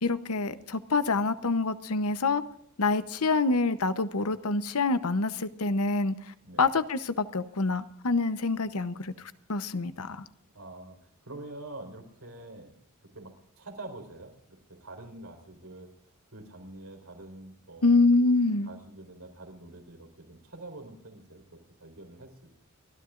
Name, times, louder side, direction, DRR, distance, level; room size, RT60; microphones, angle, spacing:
voice 1, 0.0-2.4 2.8-6.1 6.6-9.1 9.5-10.2 17.8-18.7, left 3 dB, 80° left, 13 dB, 0.9 m, -26 dB
voice 2, 6.4-6.8 10.5-12.8 13.1-18.1 18.6-22.5, right 2 dB, 80° right, 3 dB, 4.4 m, -46 dB
30.0 x 13.5 x 2.5 m, 0.69 s
head